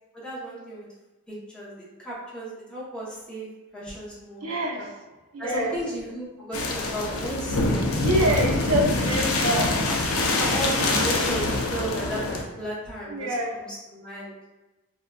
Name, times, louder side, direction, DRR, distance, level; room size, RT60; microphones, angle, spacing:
voice 1, 0.1-0.9 1.3-4.9 5.4-8.7 9.1-9.2 10.4-14.3, equal, 5° left, -9 dB, 0.7 m, -35 dB
voice 2, 4.4-4.9 5.3-5.8 8.0-9.8 13.1-13.5, right 1 dB, 80° right, 0 dB, 0.6 m, -25 dB
sound 1, 6.5-12.4, left 2 dB, 65° left, 0.4 m, -25 dB
3.4 x 2.3 x 2.2 m, 1.1 s
head